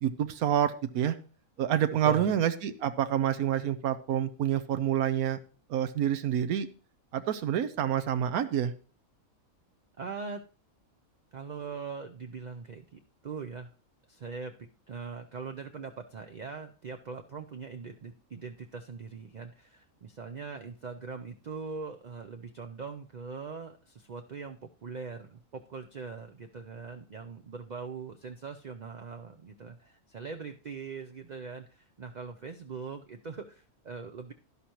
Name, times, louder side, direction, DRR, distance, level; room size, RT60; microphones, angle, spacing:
voice 1, 0.0-1.2 1.6-5.4 5.7-6.7 7.1-8.7, right 10 dB, 90° right, 11 dB, 1.2 m, -28 dB
voice 2, 2.0-2.4 10.0-10.4 11.3-13.7 14.1-34.3, right 5 dB, 65° right, 6 dB, 0.4 m, -41 dB
11.5 x 11.0 x 3.0 m, 0.37 s
omnidirectional pair, 1.5 m